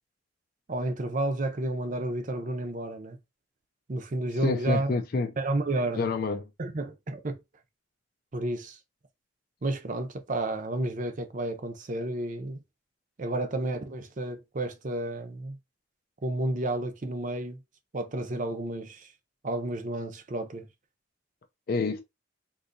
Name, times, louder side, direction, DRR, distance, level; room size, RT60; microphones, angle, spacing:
voice 1, 0.7-3.2 3.9-4.9 5.4-6.1 6.6-7.4 8.3-8.8 9.6-12.6 13.2-15.6 16.2-17.6 17.9-19.1 19.4-20.7, right 2 dB, 45° right, 0.6 m, -31 dB
voice 2, 4.3-5.3 5.9-6.4 21.7-22.0, left 3 dB, 50° left, 0.4 m, -28 dB
3.7 x 2.6 x 2.6 m
head